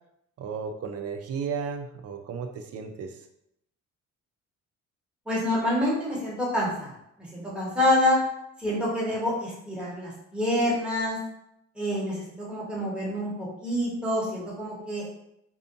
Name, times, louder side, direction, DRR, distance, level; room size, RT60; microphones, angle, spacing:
voice 1, 0.4-3.1, right 6 dB, 55° right, 6 dB, 0.5 m, -34 dB
voice 2, 5.3-6.9 7.3-8.2 8.6-11.2 11.8-15.1, left 1 dB, 5° right, -6 dB, 1.1 m, -27 dB
2.7 x 2.4 x 2.5 m, 0.78 s
cardioid pair, 90°, 30 cm